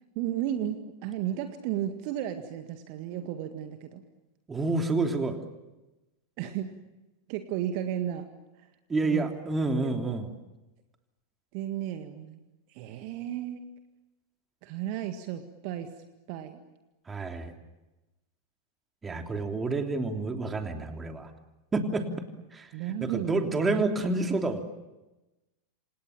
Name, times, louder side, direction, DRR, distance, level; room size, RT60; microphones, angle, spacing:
voice 1, 0.2-4.0 6.4-6.8 7.3-8.3 9.0-9.3 9.8-10.2 11.5-12.4 12.7-13.7 14.6-15.9 16.3-16.6 22.7-23.4, right 11 dB, 45° right, 8 dB, 1.9 m, -34 dB
voice 2, 4.5-5.4 8.9-10.3 17.1-17.5 19.0-21.3 21.7-22.1 22.5-22.7 23.0-24.6, right 3 dB, 15° right, 4 dB, 3.3 m, -28 dB
28.5 x 27.0 x 7.4 m, 1.0 s
figure-of-eight pair, 90°, 0 cm